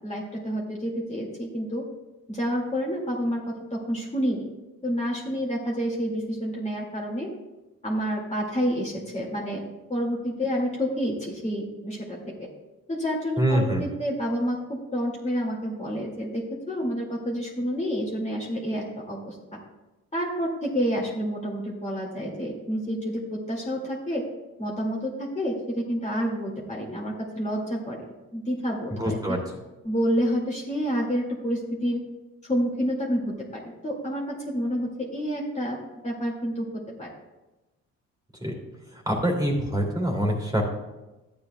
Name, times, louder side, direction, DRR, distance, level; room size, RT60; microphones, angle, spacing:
voice 1, 0.0-1.8 2.3-3.4 3.7-4.4 4.8-7.3 7.8-9.6 9.9-12.5 12.9-19.6 20.1-24.2 24.6-28.0 28.3-29.4 29.8-32.0 32.4-35.8 36.0-36.7 37.0-37.1, equal, 20° left, -4 dB, 2.2 m, -29 dB
voice 2, 13.4-13.8 29.0-29.4 38.4-38.5 39.1-40.6, right 1 dB, 10° right, -2 dB, 2.5 m, -24 dB
12.5 x 8.7 x 2.3 m, 1.1 s
cardioid pair, 90°, 30 cm